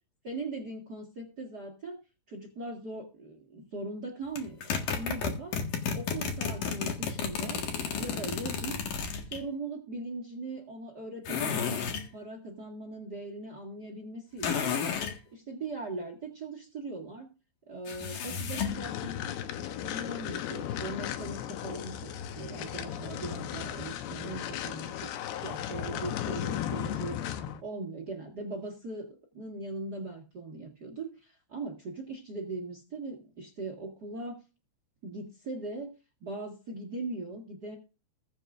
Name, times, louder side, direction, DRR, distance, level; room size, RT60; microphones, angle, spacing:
voice 1, 0.2-2.0 2.3-5.6 5.9-7.6 8.0-8.8 9.2-11.8 12.1-14.7 15.3-17.3 17.7-27.2 27.6-34.4 35.0-35.9 36.2-37.8, right 2 dB, 55° right, 4 dB, 1.0 m, -40 dB
sound 1, 4.4-9.4 11.3-12.1 14.4-15.2 17.9-18.8, left 6 dB, 60° left, 3.0 m, -32 dB
sound 2, 18.6-27.6, left 10 dB, 80° left, 2.8 m, -36 dB
21.0 x 7.5 x 2.5 m, 0.32 s
omnidirectional pair, 4.9 m